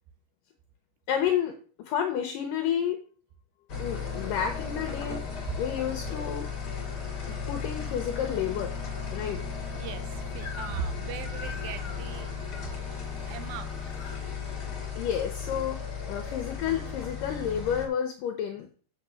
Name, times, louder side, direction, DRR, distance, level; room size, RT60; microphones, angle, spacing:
voice 1, 1.1-3.0 3.8-5.2 5.6-6.5 7.3-8.7 9.1-9.4 14.9-18.8, left 9 dB, 75° left, 5 dB, 2.3 m, -30 dB
sound 1, 3.7-17.9, left 6 dB, 35° left, 2.1 m, -35 dB
voice 2, 9.7-15.1, right 7 dB, 80° right, 10 dB, 2.6 m, -41 dB
Crying sobbing / Screech, 10.4-11.0 11.2-12.7 13.6-14.2, left 5 dB, 50° left, 1.6 m, -44 dB
7.3 x 6.2 x 5.8 m, 0.40 s
omnidirectional pair, 4.2 m